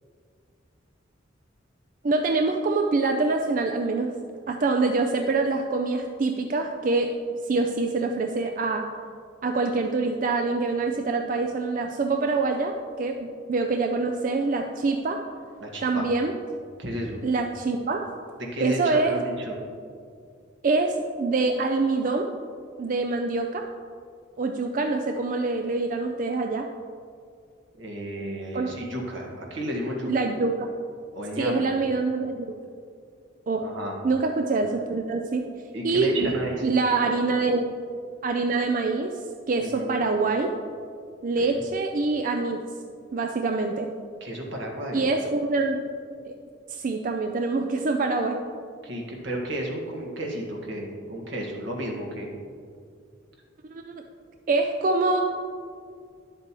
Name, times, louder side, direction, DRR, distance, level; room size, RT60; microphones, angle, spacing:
voice 1, 2.0-4.1 4.5-7.2 7.4-8.9 9.4-15.2 15.8-16.3 17.2-18.1 18.6-19.2 20.6-22.3 22.8-23.7 24.4-26.7 28.5-28.7 30.0-30.7 31.4-32.5 33.5-33.6 34.0-35.4 35.8-36.3 36.6-37.7 38.2-39.1 39.5-40.5 41.2-42.6 43.1-43.9 44.9-45.8 46.2-46.3 46.7-48.4 53.7-53.9 54.5-55.2, right 3 dB, 45° right, 4 dB, 0.4 m, -25 dB
voice 2, 15.6-16.1 16.8-17.3 18.5-19.6 27.8-30.1 31.1-31.7 33.6-34.0 35.7-36.8 37.0-37.1 39.6-40.0 41.4-41.6 44.2-45.1 48.8-52.3, right 1 dB, 80° right, -1 dB, 1.6 m, -32 dB
10.0 x 7.5 x 3.0 m, 2.2 s
head